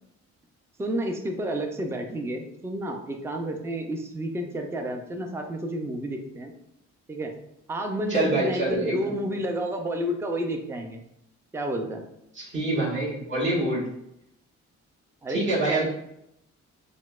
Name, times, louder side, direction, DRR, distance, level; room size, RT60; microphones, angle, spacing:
voice 1, 0.8-6.5 7.1-7.3 7.7-11.0 11.5-12.0 15.2-15.4 15.7-15.9, right 1 dB, 10° right, 4 dB, 0.4 m, -30 dB
voice 2, 8.1-9.1 12.3-13.8 15.3-15.9, right 2 dB, 40° right, -6 dB, 1.4 m, -26 dB
4.1 x 2.0 x 2.3 m, 0.78 s
cardioid pair, 90°, 30 cm